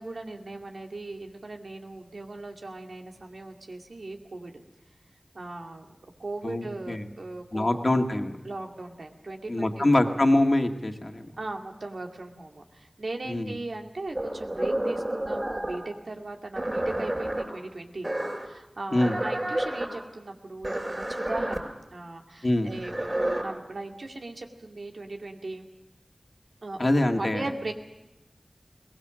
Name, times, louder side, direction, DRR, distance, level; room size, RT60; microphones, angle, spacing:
voice 1, 0.0-4.5 5.3-5.9 6.2-7.8 8.4-9.9 11.4-25.7 26.6-27.7, right 2 dB, 90° right, 3 dB, 2.3 m, -38 dB
voice 2, 6.4-7.1 7.5-8.4 9.5-11.3 13.3-13.5 18.9-19.2 22.4-22.7 26.8-27.4, left 1 dB, 50° left, 4 dB, 1.9 m, -24 dB
sound 1, 14.1-15.8 16.5-17.4 18.0-18.5 18.9-19.9 20.6-21.6 22.7-23.4, right 1 dB, 30° right, 5.8 m, -30 dB
22.0 x 19.0 x 7.5 m, 0.98 s
wide cardioid pair, 55°, 0 cm